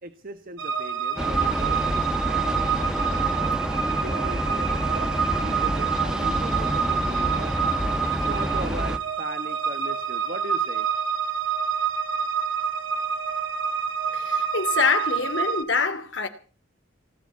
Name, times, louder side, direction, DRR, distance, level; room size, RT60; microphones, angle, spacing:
voice 1, 0.0-3.5 4.0-7.6 8.2-10.9, right 2 dB, 50° right, 1.3 m, -38 dB
sound 1, 0.6-15.6, right 6 dB, 85° right, 1.9 m, -27 dB
Train, 1.2-9.0, equal, 5° right, 1.2 m, -28 dB
voice 2, 14.1-16.3, left 5 dB, 70° left, 2.7 m, -25 dB
18.5 x 9.2 x 8.2 m
head